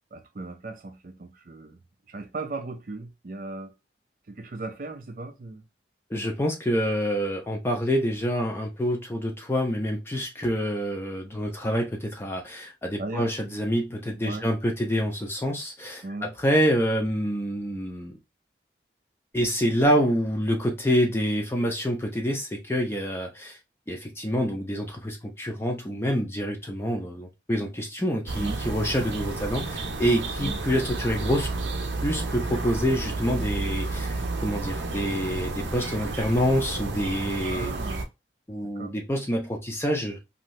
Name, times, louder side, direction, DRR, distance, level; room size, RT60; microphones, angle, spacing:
voice 1, 0.1-1.8 2.1-3.7 4.3-5.6 13.0-13.3 14.2-14.5 16.0-16.3 28.4-28.6 30.4-30.6 37.4-38.0 38.6-38.9, right 2 dB, 50° right, 0.5 m, -37 dB
voice 2, 6.1-18.1 19.3-23.6 23.9-31.5 32.0-37.7 38.5-40.2, equal, 15° left, 0.5 m, -27 dB
sound 1, 28.3-38.0, right 3 dB, 90° right, 0.7 m, -31 dB
2.7 x 2.6 x 3.0 m
head